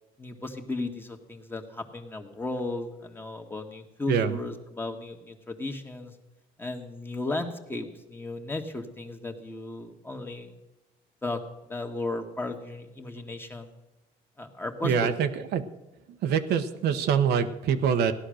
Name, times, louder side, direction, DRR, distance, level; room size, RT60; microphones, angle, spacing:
voice 1, 0.2-6.1 6.6-10.5 11.2-11.4 11.7-13.7 14.4-15.1, left 2 dB, 15° left, 4 dB, 1.8 m, -35 dB
voice 2, 4.1-4.4 14.8-15.6 16.1-18.1, right 7 dB, 75° right, 7 dB, 1.1 m, -25 dB
16.0 x 11.5 x 6.5 m, 0.96 s
cardioid pair, 110°, 17 cm